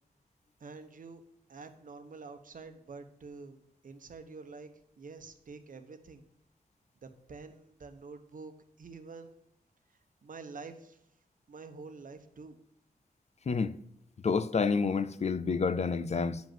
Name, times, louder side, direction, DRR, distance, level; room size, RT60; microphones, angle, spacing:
voice 1, 0.6-1.2 1.5-3.6 3.8-4.7 5.0-6.2 7.0-9.4 10.2-11.0 11.5-12.6, right 4 dB, 60° right, 1.1 m, -47 dB
voice 2, 14.2-16.4, left 5 dB, 45° left, 0.5 m, -29 dB
9.1 x 5.2 x 7.8 m
wide cardioid pair, 155°, 16 cm